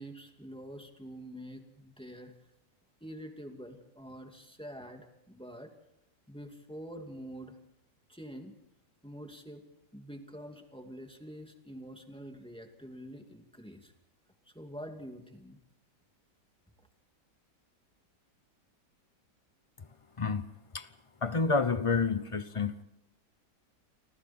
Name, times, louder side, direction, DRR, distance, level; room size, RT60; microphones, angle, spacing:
voice 1, 0.0-2.3 3.0-5.7 6.3-7.6 8.1-8.5 9.0-9.7 9.9-13.9 14.5-15.6, equal, 5° left, 2.4 m, -46 dB
voice 2, 21.2-22.7, left 4 dB, 35° left, 0.5 m, -29 dB
29.0 x 25.5 x 4.4 m
omnidirectional pair, 1.9 m